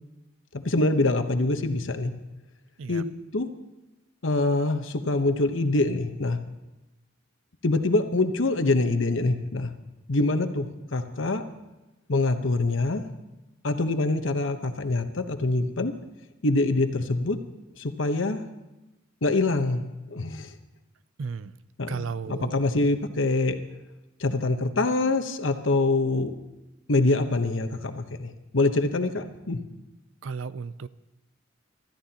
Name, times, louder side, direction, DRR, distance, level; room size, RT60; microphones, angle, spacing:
voice 1, 0.5-2.1 2.9-3.1 3.3-3.5 4.2-6.4 7.6-9.7 10.1-10.7 10.9-11.4 12.1-13.0 13.6-15.9 16.4-17.4 17.8-18.4 19.2-19.8 20.1-20.5 21.8-23.6 24.2-26.3 26.9-29.6, left 2 dB, 80° left, 7 dB, 1.1 m, -25 dB
voice 2, 21.2-21.5 21.9-22.5 30.2-30.9, right 5 dB, 85° right, 16 dB, 0.5 m, -34 dB
25.0 x 13.0 x 2.9 m, 1.0 s
head